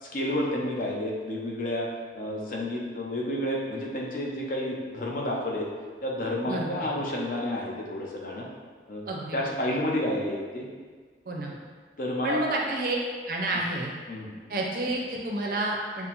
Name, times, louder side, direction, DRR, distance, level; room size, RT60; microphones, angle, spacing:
voice 1, 0.0-1.9 2.1-5.7 6.0-8.5 8.9-10.6 12.0-12.4 14.1-14.3, left 1 dB, 50° left, -2 dB, 0.5 m, -30 dB
voice 2, 6.5-6.9 9.1-9.8 11.3-11.6 12.2-13.0 13.3-13.9 14.5-16.1, right 2 dB, 55° right, -1 dB, 0.5 m, -30 dB
5.4 x 2.0 x 2.9 m, 1.5 s
head